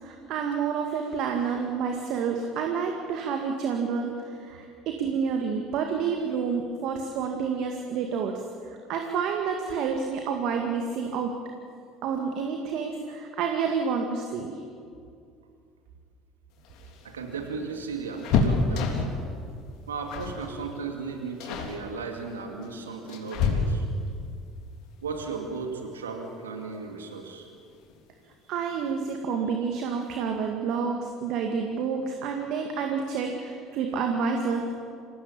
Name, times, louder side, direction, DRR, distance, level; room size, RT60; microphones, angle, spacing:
voice 1, 0.0-8.4 8.9-11.3 12.0-14.6 28.5-34.7, right 6 dB, 60° right, 3 dB, 2.2 m, -29 dB
sound 1, 16.6-19.3 20.1-20.4 20.7-21.0 21.4-21.8 22.6-24.1 25.8-25.9 26.3-26.4 27.6-28.0 28.3-28.4 28.7-28.9, left 4 dB, 60° left, 3.4 m, -28 dB
voice 2, 17.0-19.0 19.9-23.9 25.0-27.5, right 4 dB, 85° right, 3 dB, 2.5 m, -35 dB
26.5 x 17.5 x 8.8 m, 2.3 s
hypercardioid pair, 65°, 0 cm